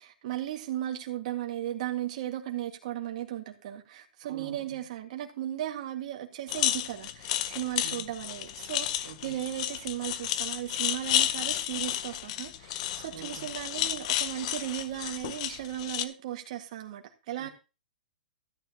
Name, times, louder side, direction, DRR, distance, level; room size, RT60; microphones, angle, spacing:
voice 1, 0.0-17.5, right 12 dB, 50° right, 1.8 m, -36 dB
voice 2, 4.2-4.8 7.8-8.1 9.0-9.5 13.1-13.6 17.4-17.5, right 7 dB, 65° right, 1.8 m, -47 dB
sound 1, 6.5-16.0, left 12 dB, 45° left, 0.8 m, -31 dB
14.0 x 9.3 x 2.9 m
hypercardioid pair, 140°, 5 cm